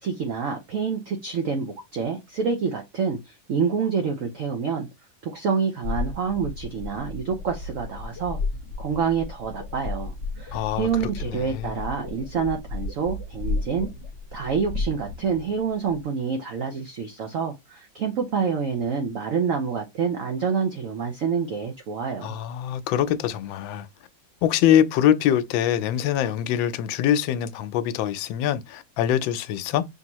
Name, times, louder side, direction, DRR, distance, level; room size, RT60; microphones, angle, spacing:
voice 1, 0.0-4.9 5.2-8.4 8.8-13.9 14.3-22.4, right 6 dB, 60° right, 0.9 m, -27 dB
sound 1, 5.8-16.0, left 3 dB, 45° left, 1.1 m, -33 dB
voice 2, 10.5-11.9 22.2-23.9 24.4-29.8, left 10 dB, 80° left, 1.3 m, -24 dB
5.7 x 2.8 x 3.0 m
omnidirectional pair, 2.1 m